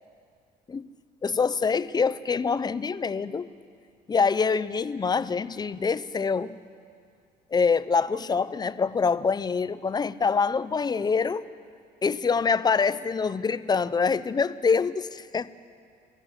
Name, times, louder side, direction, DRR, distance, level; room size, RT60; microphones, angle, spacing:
voice 1, 1.2-3.5 4.1-6.6 7.5-11.4 12.0-15.5, left 5 dB, 25° left, 15 dB, 0.7 m, -25 dB
28.0 x 16.5 x 8.0 m, 2.2 s
cardioid pair, 110°, 17 cm